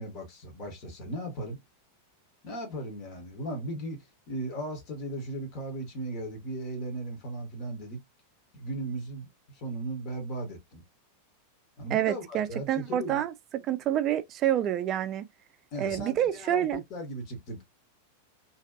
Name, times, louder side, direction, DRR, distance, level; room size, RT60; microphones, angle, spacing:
voice 1, 0.0-1.6 2.4-4.0 4.3-8.0 8.5-9.3 9.5-10.8 11.8-13.2 15.7-17.6, right 1 dB, 40° left, 1.1 m, -37 dB
voice 2, 11.9-15.3 15.8-16.8, right 11 dB, 35° right, 0.4 m, -28 dB
2.6 x 2.5 x 2.3 m
figure-of-eight pair, 90°, 0 cm